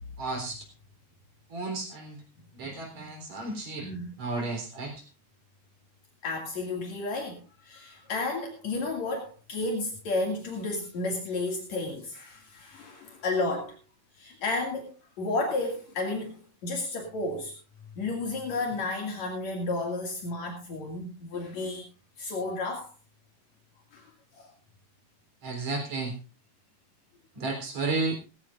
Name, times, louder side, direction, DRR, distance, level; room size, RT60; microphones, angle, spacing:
voice 1, 0.2-0.6 1.5-2.2 2.5-3.9 4.2-5.0 25.4-26.1 27.3-28.2, right 3 dB, 65° right, 4 dB, 4.9 m, -32 dB
voice 2, 3.8-4.1 6.2-13.8 14.2-17.6 18.0-21.8 22.2-22.9 23.9-24.1 24.3-24.5, left 2 dB, 70° left, 1 dB, 3.5 m, -32 dB
19.5 x 15.5 x 2.5 m, 0.31 s
omnidirectional pair, 3.4 m